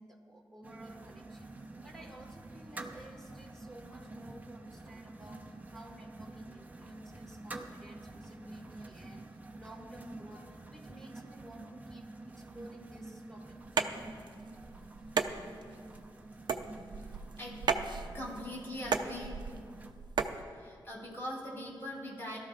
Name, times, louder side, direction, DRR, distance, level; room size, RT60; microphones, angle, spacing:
voice 1, 0.0-1.5 1.8-14.1, right 1 dB, 5° left, 0 dB, 1.6 m, -52 dB
sound 1, 0.6-19.9, right 2 dB, 20° right, 0.7 m, -49 dB
sound 2, 13.6-20.4, right 5 dB, 65° right, 0.6 m, -35 dB
voice 2, 18.1-19.4 20.5-22.4, left 1 dB, 30° left, -4 dB, 3.6 m, -41 dB
21.5 x 13.5 x 2.4 m, 2.1 s
wide cardioid pair, 170°, 8 cm